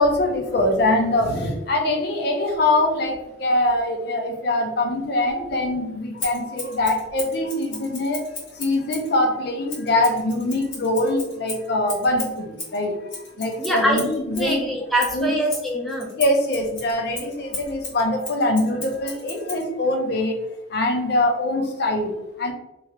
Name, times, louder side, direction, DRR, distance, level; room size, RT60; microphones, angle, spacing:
voice 1, 0.0-14.6 15.1-15.3 16.1-22.5, left 1 dB, 55° left, 3 dB, 0.5 m, -23 dB
Scissors, 6.2-9.1 9.7-14.6 15.0-19.7, left 2 dB, 70° left, 1.4 m, -35 dB
voice 2, 13.6-16.1, equal, ahead, -2 dB, 0.4 m, -24 dB
3.0 x 2.4 x 2.8 m, 0.95 s
head